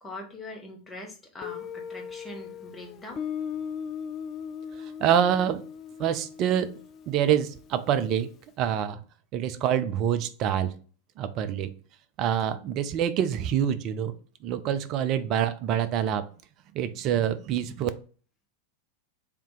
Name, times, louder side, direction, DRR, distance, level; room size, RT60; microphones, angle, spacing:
voice 1, 0.0-3.2, left 1 dB, 10° left, 1 dB, 1.1 m, -42 dB
Guitar, 1.4-8.1, left 7 dB, 30° left, 0.4 m, -38 dB
voice 2, 4.8-5.6 6.0-6.7 7.1-8.3 8.6-9.0 9.3-10.8 11.2-11.7 12.2-14.1 14.4-16.3 16.7-17.9, right 9 dB, 35° right, 11 dB, 0.4 m, -26 dB
3.5 x 2.8 x 4.7 m, 0.39 s
figure-of-eight pair, 90°, 0 cm